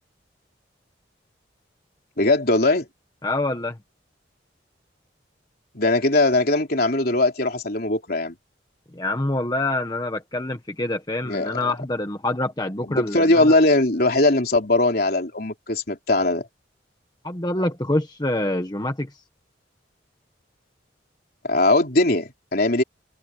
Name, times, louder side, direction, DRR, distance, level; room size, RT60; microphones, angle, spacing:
voice 1, 2.2-2.9 5.7-8.4 11.2-11.6 12.9-16.5 21.4-22.8, left 2 dB, 55° left, 3.7 m, -20 dB
voice 2, 3.2-3.8 8.9-13.5 17.2-19.1, left 2 dB, 20° left, 1.3 m, -26 dB
head